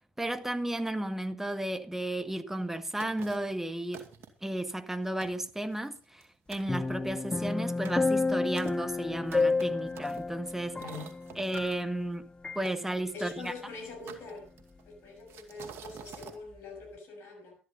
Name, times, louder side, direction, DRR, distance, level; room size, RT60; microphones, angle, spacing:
voice 1, 0.2-4.1 4.4-10.8 11.4-13.5, right 1 dB, 5° right, 1.8 m, -33 dB
sound 1, 3.0-3.5 3.9-4.5 4.9-5.0 5.2-6.3 6.5-6.8 7.3-11.8 12.6-13.5 14.1-14.8 15.3-16.4, right 7 dB, 55° right, 2.4 m, -49 dB
sound 2, 6.7-12.1 12.4-12.6, left 3 dB, 20° left, 0.7 m, -31 dB
voice 2, 10.8-11.1 13.1-14.5 14.9-17.6, left 3 dB, 60° left, 7.0 m, -43 dB
13.0 x 11.0 x 5.5 m
hypercardioid pair, 60°, 5 cm